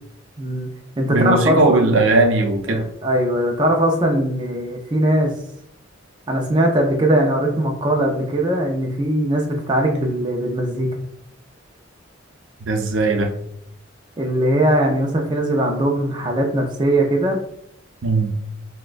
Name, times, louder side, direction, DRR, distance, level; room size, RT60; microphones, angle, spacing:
voice 1, 0.4-0.7 1.0-2.3 2.7-5.3 6.3-11.0 14.2-17.4, right 1 dB, 20° right, 0 dB, 0.4 m, -20 dB
voice 2, 1.1-2.8 12.7-13.3 18.0-18.3, right 2 dB, 65° right, 3 dB, 0.6 m, -18 dB
6.0 x 2.2 x 2.4 m, 0.72 s
head